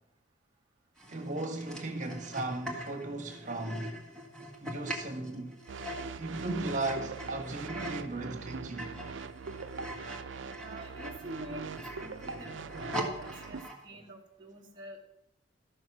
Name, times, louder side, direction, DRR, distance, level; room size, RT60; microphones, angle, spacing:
sound 1, 1.0-8.1 8.5-13.8, equal, 5° left, 1.6 m, -42 dB
voice 1, 1.1-4.0 4.6-5.6 6.2-9.0, right 2 dB, 40° right, 1.6 m, -36 dB
sound 2, 5.7-13.6, right 5 dB, 70° right, 0.5 m, -42 dB
voice 2, 10.6-15.0, right 1 dB, 20° right, 1.2 m, -47 dB
13.5 x 6.4 x 6.1 m
head